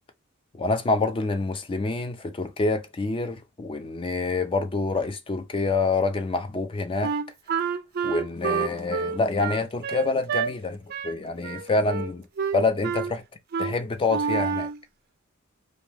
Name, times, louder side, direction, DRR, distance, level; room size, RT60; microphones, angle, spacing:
voice 1, 0.5-7.1 8.0-10.8 11.0-12.3 12.5-13.2 13.6-14.7, left 3 dB, 25° left, 0.4 m, -26 dB
Wind instrument woodwind instrument, 7.0-10.5 10.9-11.2 11.4-12.1 12.4-13.1 13.5-13.7 14.1-14.8, right 6 dB, 45° right, 0.4 m, -28 dB
2.6 x 2.1 x 3.2 m
head